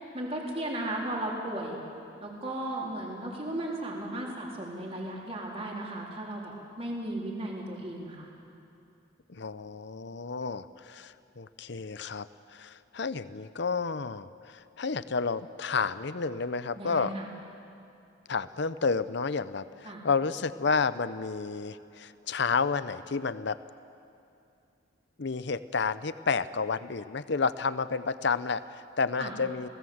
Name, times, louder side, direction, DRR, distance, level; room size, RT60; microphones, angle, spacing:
voice 1, 0.1-1.8 2.2-8.3 16.8-17.3 19.8-20.0 29.2-29.3, right 1 dB, 30° right, -2 dB, 4.1 m, -35 dB
voice 2, 9.3-17.1 18.3-23.6 25.2-29.7, left 4 dB, 60° left, 14 dB, 0.7 m, -31 dB
29.0 x 18.0 x 8.0 m, 2.6 s
head